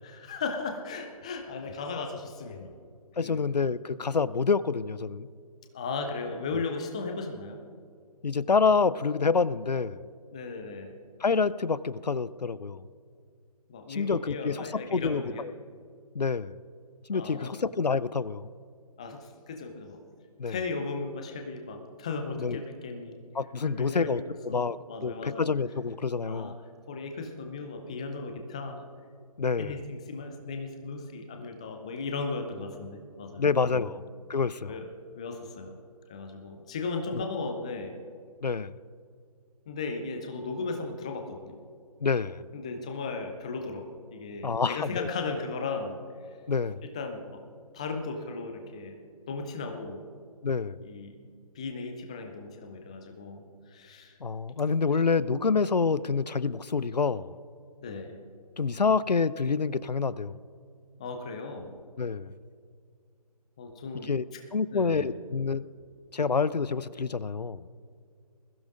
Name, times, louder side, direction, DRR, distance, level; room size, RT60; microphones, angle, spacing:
voice 1, 0.0-2.7 3.2-3.4 5.7-7.6 10.3-10.9 13.7-15.5 17.1-17.6 19.0-20.0 20.5-23.2 23.6-25.4 26.3-26.5 26.9-28.8 29.6-33.9 34.6-34.9 35.2-35.7 36.1-38.0 39.7-41.6 42.5-46.0 46.9-47.4 47.7-48.9 49.3-50.0 50.8-51.2 51.6-54.1 57.8-58.2 61.0-61.7 63.6-64.1 64.7-65.2, left 4 dB, 10° left, 5 dB, 0.4 m, -36 dB
voice 2, 3.2-5.3 6.5-6.6 8.2-10.0 11.2-12.8 13.9-15.5 16.1-16.6 17.1-18.5 20.4-20.6 22.4-22.6 23.3-26.5 29.4-29.8 33.4-34.0 34.3-34.7 37.1-37.2 38.4-38.7 42.0-42.4 44.4-45.1 46.5-46.9 50.4-50.8 54.2-57.3 58.6-60.4 62.0-62.3 64.0-64.2 64.5-65.7 66.1-67.6, left 5 dB, 80° left, 18 dB, 0.5 m, -27 dB
21.0 x 15.0 x 2.5 m, 2.2 s
figure-of-eight pair, 150°, 21 cm